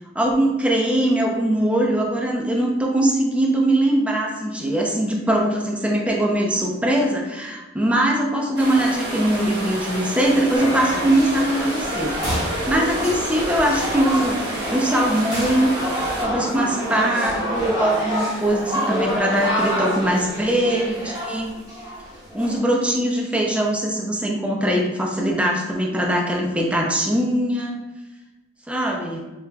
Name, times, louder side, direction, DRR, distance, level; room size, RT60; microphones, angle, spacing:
voice 1, 0.1-12.3 12.7-15.7 16.2-21.5 22.3-27.8 28.7-29.2, right 1 dB, 5° right, -1 dB, 0.5 m, -21 dB
sound 1, 8.6-16.2, right 1 dB, 60° right, 1.0 m, -30 dB
sound 2, 10.5-22.6, equal, 20° right, 1.4 m, -27 dB
4.6 x 3.0 x 2.2 m, 1.1 s
head